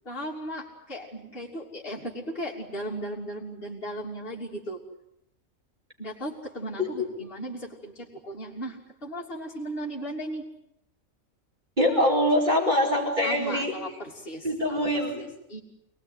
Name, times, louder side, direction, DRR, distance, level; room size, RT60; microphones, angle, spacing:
voice 1, 0.0-4.8 6.0-10.4 13.2-14.8 15.2-15.6, right 1 dB, 40° left, -2 dB, 3.4 m, -36 dB
voice 2, 11.8-13.7 14.4-15.2, left 1 dB, 30° right, -1 dB, 4.9 m, -24 dB
27.0 x 19.5 x 9.7 m, 0.82 s
omnidirectional pair, 1.5 m